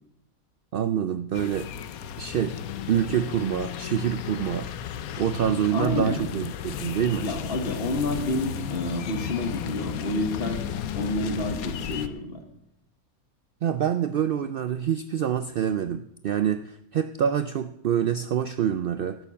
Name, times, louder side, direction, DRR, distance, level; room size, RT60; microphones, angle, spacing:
voice 1, 0.7-1.7 2.2-2.6 2.9-4.7 5.2-7.3 13.6-19.2, right 9 dB, 85° right, 10 dB, 0.4 m, -26 dB
sound 1, 1.3-12.1, left 9 dB, 80° left, 1.1 m, -34 dB
voice 2, 5.7-6.3 7.2-10.6 10.9-12.4, left 2 dB, 45° left, 5 dB, 1.6 m, -29 dB
12.0 x 6.9 x 7.0 m, 0.79 s
omnidirectional pair, 1.5 m